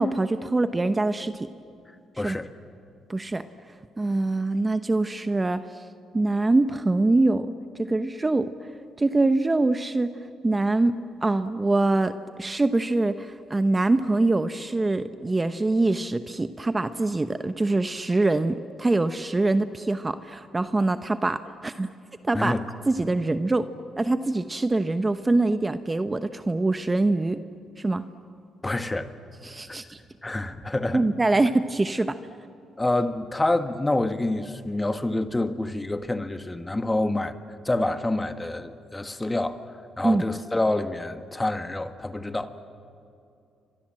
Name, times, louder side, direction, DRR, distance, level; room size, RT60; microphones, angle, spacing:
voice 1, 0.0-1.5 2.2-2.4 3.1-3.4 4.0-5.7 6.1-7.5 7.8-8.5 9.0-10.1 10.4-10.9 11.2-21.9 22.2-22.5 22.9-23.7 24.0-27.4 27.8-28.0 29.4-30.0 30.9-32.2 40.0-40.2, right 2 dB, 20° right, 10 dB, 0.9 m, -24 dB
voice 2, 2.2-2.5 22.3-22.6 28.6-29.1 29.7-29.8 30.2-31.0 32.8-37.3 37.6-39.6 40.0-42.5, left 2 dB, 15° left, 9 dB, 1.6 m, -27 dB
30.0 x 25.0 x 7.7 m, 2.6 s
cardioid pair, 90°, 0 cm